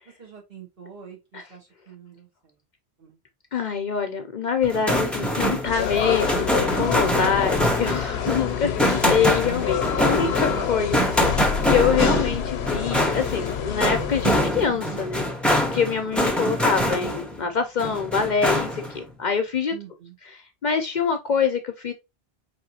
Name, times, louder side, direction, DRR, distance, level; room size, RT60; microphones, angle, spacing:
voice 1, 0.2-2.5 3.0-3.2 9.8-10.0 16.0-16.3 19.7-20.2, right 8 dB, 60° right, 1.9 m, -45 dB
voice 2, 3.5-15.2 15.7-19.7 20.6-21.9, left 6 dB, 55° left, 0.6 m, -25 dB
sound 1, 4.6-17.4 17.8-19.0, equal, ahead, 0.6 m, -24 dB
sound 2, 5.6-14.4, left 8 dB, 85° left, 0.8 m, -27 dB
4.8 x 3.3 x 2.8 m
omnidirectional pair, 1.1 m